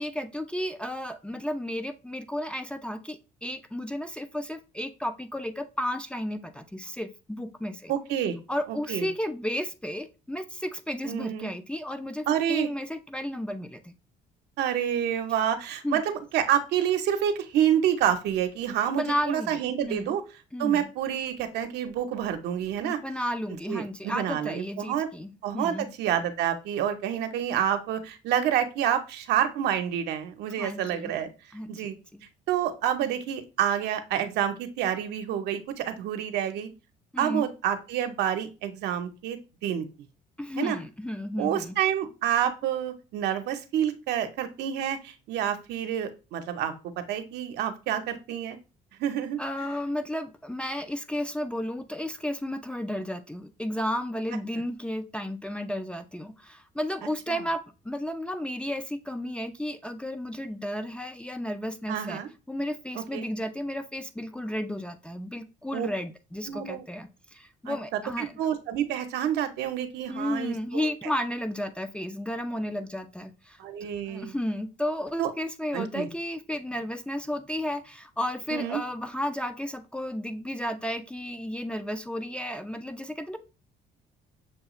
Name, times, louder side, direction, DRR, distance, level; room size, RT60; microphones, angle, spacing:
voice 1, 0.0-7.9 8.5-13.9 15.8-16.0 18.9-20.1 20.5-20.9 22.8-25.9 30.6-31.1 31.5-32.2 37.1-37.5 40.4-41.8 49.4-62.2 62.5-68.3 70.1-83.4, left 1 dB, 5° left, 8 dB, 0.4 m, -33 dB
voice 2, 7.9-8.4 8.7-9.1 11.0-11.5 12.3-12.7 14.6-20.2 20.6-23.0 23.7-25.1 25.4-31.3 31.7-31.9 32.5-36.7 37.2-39.9 40.6-40.8 41.4-48.6 49.0-49.4 57.3-57.4 61.9-62.3 63.1-63.3 65.7-65.9 66.5-66.8 67.7-70.9 73.6-74.4 75.2-75.3 75.7-76.1 78.5-78.8, right 10 dB, 80° right, 7 dB, 0.7 m, -28 dB
6.5 x 2.4 x 2.9 m, 0.30 s
cardioid pair, 110°, 17 cm